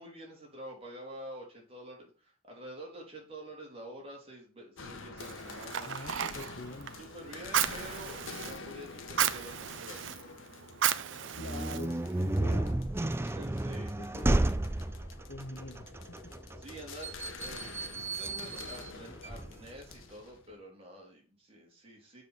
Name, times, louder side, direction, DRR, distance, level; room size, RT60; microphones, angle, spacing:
voice 1, 0.0-5.9 7.0-10.1 11.2-11.9 13.2-13.9 16.6-22.2, right 1 dB, 30° right, 3.6 m, -48 dB
sound 1, 4.8-20.5, left 4 dB, 90° left, 1.3 m, -48 dB
Fire, 5.2-12.4, right 9 dB, 75° right, 0.6 m, -35 dB
voice 2, 5.8-7.0 11.3-12.8 13.8-14.5 15.3-15.9 16.2-16.3, left 2 dB, 50° left, 1.2 m, -44 dB
sound 2, 11.3-20.0, right 1 dB, 10° right, 0.4 m, -33 dB
7.3 x 5.8 x 6.5 m
head